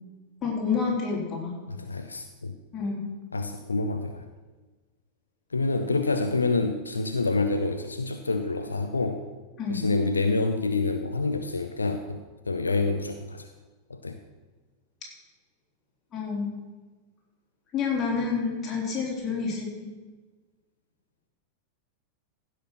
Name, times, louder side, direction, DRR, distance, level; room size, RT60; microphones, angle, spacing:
voice 1, 0.4-1.5 2.7-3.0 9.6-9.9 16.1-16.5 17.7-19.9, left 5 dB, 25° left, -3 dB, 4.0 m, -28 dB
voice 2, 1.7-2.6 3.3-4.2 5.5-9.3 9.7-12.2 12.5-13.5 13.9-14.2, left 3 dB, 75° left, 7 dB, 0.6 m, -27 dB
15.0 x 6.5 x 6.0 m, 1.3 s
figure-of-eight pair, 90°, 0 cm